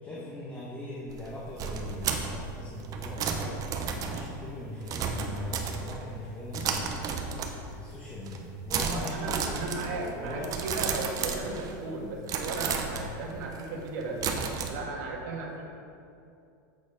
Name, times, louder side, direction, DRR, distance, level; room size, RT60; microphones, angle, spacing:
voice 1, 0.0-10.6, left 1 dB, 15° left, -6 dB, 1.4 m, -40 dB
sound 1, 1.1-6.2 6.5-7.9 8.2-8.4 8.7-11.9 12.3-14.7, right 6 dB, 35° right, 0.9 m, -33 dB
voice 2, 8.8-14.2 14.7-15.6, right 2 dB, 65° right, -1 dB, 1.6 m, -36 dB
8.2 x 6.4 x 5.1 m, 2.5 s
supercardioid pair, 125°, 10 cm